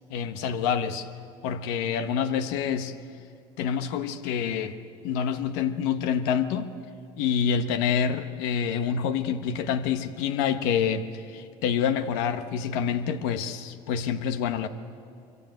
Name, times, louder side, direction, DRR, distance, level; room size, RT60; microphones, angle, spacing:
voice 1, 0.1-1.1 1.4-2.9 3.6-4.7 5.0-6.7 7.2-14.7, left 7 dB, 85° left, 10 dB, 1.3 m, -27 dB
25.0 x 24.0 x 9.3 m, 2.4 s
cardioid pair, 140°, 12 cm